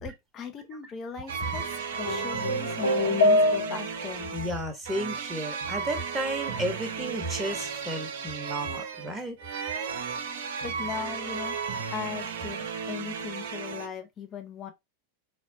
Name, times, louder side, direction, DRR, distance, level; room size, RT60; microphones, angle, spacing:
voice 1, 0.0-4.3 9.8-9.9 10.6-11.6 11.9-14.7, left 7 dB, 30° left, 0.9 m, -39 dB
sound 1, 1.3-13.9, right 6 dB, 55° right, 0.6 m, -34 dB
sound 2, 2.0-4.1, left 1 dB, 65° left, 1.2 m, -24 dB
voice 2, 4.3-9.7, right 1 dB, 15° right, 1.1 m, -33 dB
4.1 x 3.2 x 2.7 m
figure-of-eight pair, 90°, 0 cm